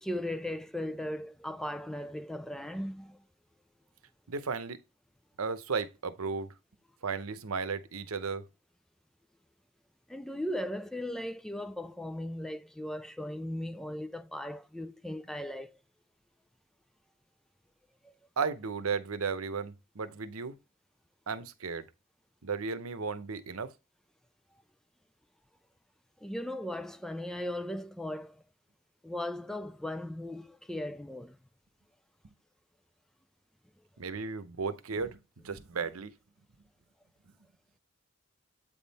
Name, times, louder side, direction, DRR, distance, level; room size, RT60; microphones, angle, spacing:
voice 1, 0.0-3.2 10.1-15.8 18.0-18.1 26.2-28.4 29.0-31.4, left 1 dB, ahead, 0.3 m, -37 dB
voice 2, 4.3-4.8 5.4-6.5 7.0-8.4 18.4-20.5 21.3-21.8 22.4-23.7 32.2-32.3 34.0-36.1, right 5 dB, 85° right, 0.8 m, -35 dB
8.3 x 3.6 x 4.1 m
head